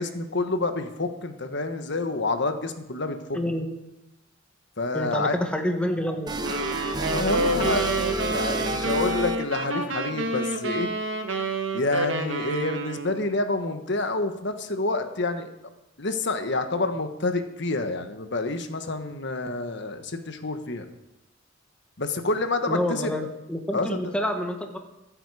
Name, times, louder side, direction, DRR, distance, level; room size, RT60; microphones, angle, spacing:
voice 1, 0.0-3.4 4.8-5.4 7.0-8.0 8.2-10.9 11.7-15.5 16.0-20.8 22.0-23.1 23.7-24.1, left 2 dB, 60° left, 8 dB, 1.3 m, -28 dB
voice 2, 3.3-3.7 4.9-6.4 22.7-24.8, equal, 5° left, 4 dB, 1.4 m, -28 dB
sound 1, 6.3-9.7, right 1 dB, 20° right, 1.0 m, -30 dB
sound 2, 6.4-13.2, right 2 dB, 70° right, 1.5 m, -29 dB
24.5 x 8.9 x 4.9 m, 0.92 s
head